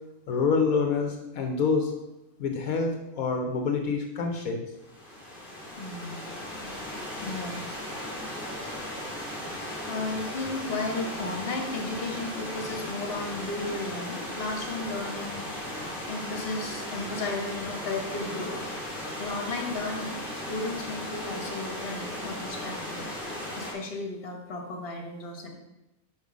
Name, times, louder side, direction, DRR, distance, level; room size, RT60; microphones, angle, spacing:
voice 1, 0.3-1.9 2.4-4.6, left 5 dB, 80° left, 4 dB, 1.2 m, -26 dB
Stream / Liquid, 4.8-23.7, left 1 dB, ahead, 1.9 m, -36 dB
voice 2, 5.8-6.3 7.2-7.7 9.9-15.4 16.1-18.6 19.2-20.2 20.5-23.1 23.6-25.5, left 2 dB, 45° left, 2 dB, 1.4 m, -34 dB
5.3 x 5.1 x 6.1 m, 0.95 s
omnidirectional pair, 1.5 m